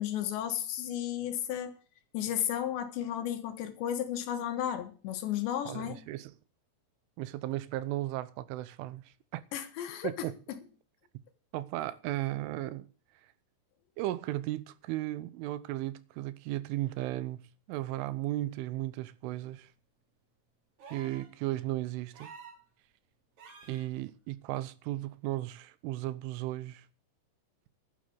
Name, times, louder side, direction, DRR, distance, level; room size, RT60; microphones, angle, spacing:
voice 1, 0.0-1.8 2.1-6.0 9.5-10.6, left 10 dB, 70° left, 3.7 m, -34 dB
voice 2, 5.7-6.3 7.2-9.4 10.0-10.3 11.5-12.9 14.0-19.7 20.9-22.3 23.6-26.9, right 16 dB, 90° right, 3.4 m, -35 dB
sound 1, 20.8-21.3 22.1-22.6 23.4-23.9 25.3-25.4, right 4 dB, 45° right, 3.6 m, -50 dB
12.0 x 10.0 x 7.9 m
omnidirectional pair, 5.5 m